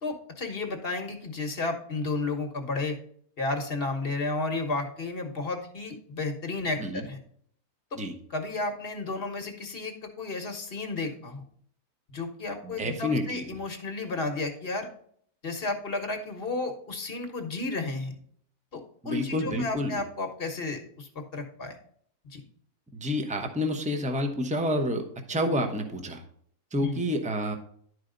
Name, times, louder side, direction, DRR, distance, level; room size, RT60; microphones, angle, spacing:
voice 1, 0.0-3.0 3.4-7.2 7.9-8.0 8.3-11.4 12.1-14.9 15.4-18.2 18.7-21.8 22.2-22.4 26.8-27.0, left 3 dB, 40° left, 5 dB, 1.3 m, -32 dB
voice 2, 12.6-13.6 19.0-20.0 22.9-26.2 26.7-27.5, left 1 dB, 5° right, 4 dB, 0.7 m, -29 dB
11.0 x 4.9 x 3.9 m, 0.62 s
omnidirectional pair, 1.6 m